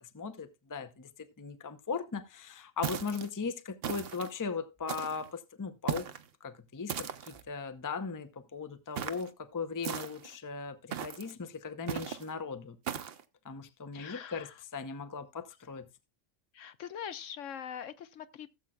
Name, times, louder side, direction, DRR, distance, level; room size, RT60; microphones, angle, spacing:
voice 1, 0.0-6.1 6.4-12.8 13.4-15.9, left 5 dB, 20° left, 0.6 m, -38 dB
sound 1, 2.8-3.3 3.8-4.3 4.9-5.3 5.9-6.3 6.9-7.4 9.0-9.3 9.8-10.3 10.9-11.3 11.9-12.2 12.9-13.2, right 8 dB, 55° right, 0.9 m, -37 dB
voice 2, 13.9-14.5 16.5-18.5, left 8 dB, 70° left, 1.0 m, -43 dB
17.5 x 7.6 x 2.3 m
omnidirectional pair, 1.4 m